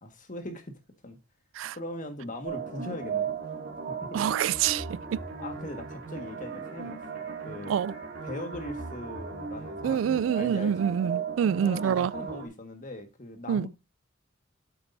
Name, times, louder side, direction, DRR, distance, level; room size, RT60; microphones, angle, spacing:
voice 1, 0.0-1.2 1.7-3.3 4.0-4.2 5.1-7.8 8.2-10.9 11.6-13.7, left 1 dB, 40° left, 1.7 m, -40 dB
sound 1, 2.4-12.5, right 6 dB, 55° right, 2.3 m, -36 dB
voice 2, 4.1-4.8 5.1-5.2 7.7-7.9 9.8-12.1 13.5-13.7, right 8 dB, 85° right, 0.3 m, -26 dB
8.5 x 7.7 x 2.7 m
head